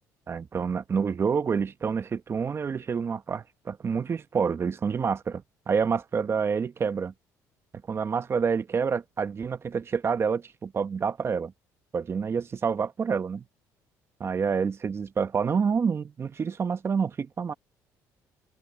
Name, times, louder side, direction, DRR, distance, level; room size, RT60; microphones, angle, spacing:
voice 1, 0.3-7.1 7.9-11.5 11.9-13.4 14.2-17.5, right 6 dB, 40° right, 1.5 m, -28 dB
open air
supercardioid pair, 85°, 7 cm